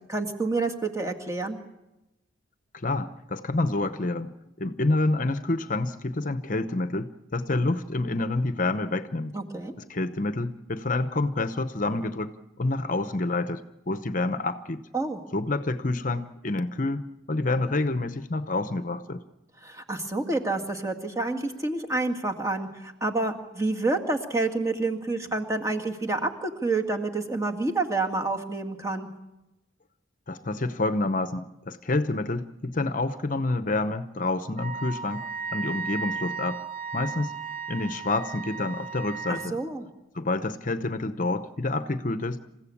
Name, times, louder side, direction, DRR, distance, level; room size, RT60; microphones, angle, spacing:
voice 1, 0.1-1.6 9.3-9.7 14.9-15.2 19.6-29.1 39.3-39.9, right 3 dB, 15° right, 3 dB, 1.9 m, -28 dB
voice 2, 2.8-9.4 9.9-12.3 12.6-14.8 15.3-19.2 30.3-36.6 36.9-37.3 37.7-39.6 40.1-42.4, left 2 dB, 40° left, 11 dB, 0.8 m, -28 dB
Wind instrument woodwind instrument, 34.6-39.5, right 5 dB, 45° right, 1.3 m, -35 dB
28.0 x 15.5 x 8.5 m, 0.97 s
head